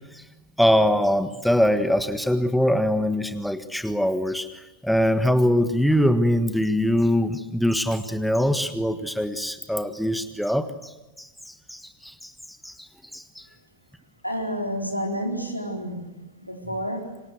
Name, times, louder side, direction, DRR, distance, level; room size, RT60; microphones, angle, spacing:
voice 1, 0.6-4.5 4.8-10.7 11.2-12.3 12.6-12.9 13.1-13.4, equal, ahead, 10 dB, 1.5 m, -23 dB
voice 2, 14.2-16.1 16.4-17.1, equal, 90° left, 1 dB, 4.4 m, -29 dB
27.5 x 25.0 x 8.0 m, 1.1 s
figure-of-eight pair, 90°, 0 cm